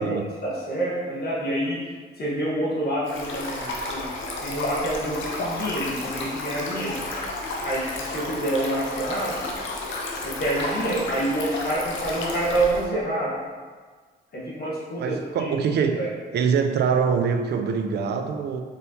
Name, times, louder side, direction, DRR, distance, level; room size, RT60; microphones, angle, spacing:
voice 1, 0.0-1.8 2.2-4.1 4.4-7.0 7.6-9.4 10.2-13.4 14.3-15.5 15.9-16.1, right 1 dB, 50° left, -6 dB, 1.2 m, -27 dB
Stream, 3.0-12.8, left 2 dB, 70° left, 0.7 m, -32 dB
voice 2, 15.0-16.0 16.3-18.6, right 6 dB, 55° right, 5 dB, 0.5 m, -24 dB
4.0 x 3.7 x 2.8 m, 1.5 s
cardioid pair, 90°, 20 cm